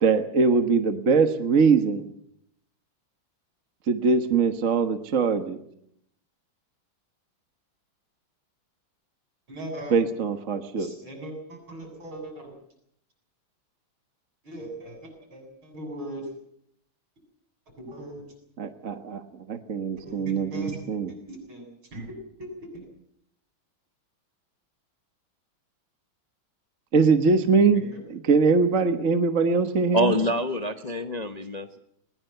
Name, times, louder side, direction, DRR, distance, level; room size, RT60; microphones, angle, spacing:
voice 1, 0.0-2.1 3.9-5.6 9.9-10.9 18.6-19.2 19.5-21.1 26.9-30.1, right 5 dB, 40° right, 8 dB, 1.5 m, -22 dB
voice 2, 9.5-9.9 10.8-12.5 14.4-16.3 17.8-18.3 20.0-22.7 27.5-28.0, right 1 dB, 75° right, 4 dB, 8.4 m, -39 dB
voice 3, 29.9-31.8, equal, 30° left, 7 dB, 0.8 m, -26 dB
20.5 x 20.5 x 8.0 m, 0.73 s
omnidirectional pair, 2.3 m